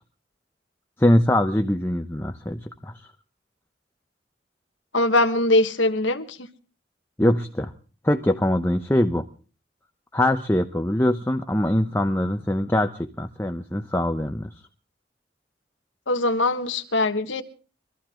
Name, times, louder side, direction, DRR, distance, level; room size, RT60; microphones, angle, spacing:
voice 1, 1.0-2.9 7.2-7.7 8.0-9.2 10.1-14.5, left 1 dB, 15° left, 0.8 m, -22 dB
voice 2, 4.9-6.4 16.1-17.4, left 2 dB, 85° left, 1.5 m, -21 dB
24.0 x 14.5 x 3.8 m
head